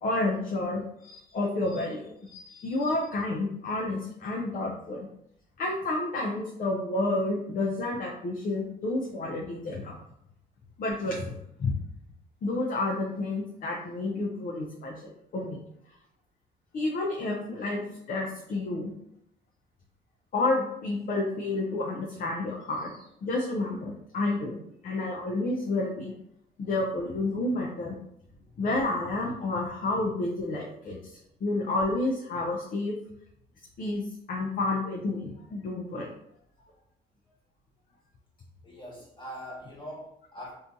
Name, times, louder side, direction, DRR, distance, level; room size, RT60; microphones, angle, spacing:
voice 1, 0.0-5.1 5.6-10.0 10.8-11.7 12.4-15.6 16.7-18.9 20.3-24.6 24.8-26.1 26.6-28.0 28.6-31.0 31.4-33.0 33.8-36.1, left 2 dB, 45° left, -1 dB, 0.5 m, -30 dB
voice 2, 28.2-28.6 38.6-40.5, equal, 25° left, -6 dB, 1.2 m, -43 dB
2.6 x 2.2 x 2.6 m, 0.75 s
cardioid pair, 90°, 20 cm